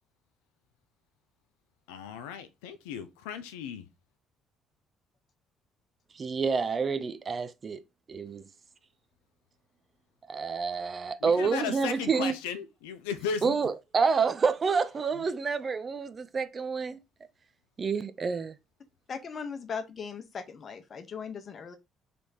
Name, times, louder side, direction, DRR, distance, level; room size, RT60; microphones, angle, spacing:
voice 1, 1.9-3.9 11.2-13.5, left 7 dB, 80° left, 0.4 m, -36 dB
voice 2, 6.2-7.8 8.1-8.4 10.3-12.3 13.4-17.0 17.8-18.6, right 5 dB, 40° right, 0.5 m, -28 dB
voice 3, 19.1-21.8, left 6 dB, 50° left, 0.9 m, -38 dB
3.3 x 3.1 x 4.0 m
hypercardioid pair, 55°, 0 cm